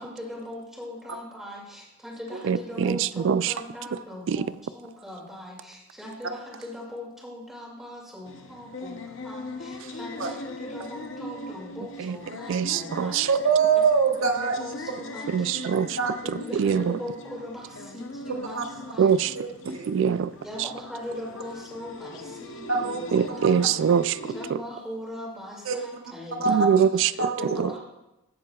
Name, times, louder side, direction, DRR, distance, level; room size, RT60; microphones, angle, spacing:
voice 1, 0.0-13.2 14.4-15.8 16.2-19.2 20.4-23.7 24.3-26.8 27.4-27.8, left 1 dB, ahead, -4 dB, 2.2 m, -40 dB
voice 2, 2.4-3.5 4.3-4.5 12.0-12.2 12.5-13.3 15.3-16.0 16.5-17.0 19.0-19.3 19.9-20.3 23.1-24.2 24.5-24.6 26.5-27.8, right 7 dB, 60° right, 16 dB, 0.3 m, -23 dB
sound 1, 8.3-24.5, left 2 dB, 65° left, 0.6 m, -40 dB
voice 3, 13.3-15.0 16.0-16.2 18.5-18.6 19.3-20.0 22.7-23.5 25.6-25.8 26.3-26.5 27.2-27.5, right 5 dB, 90° right, 4 dB, 1.0 m, -24 dB
15.0 x 7.5 x 2.3 m, 0.95 s
head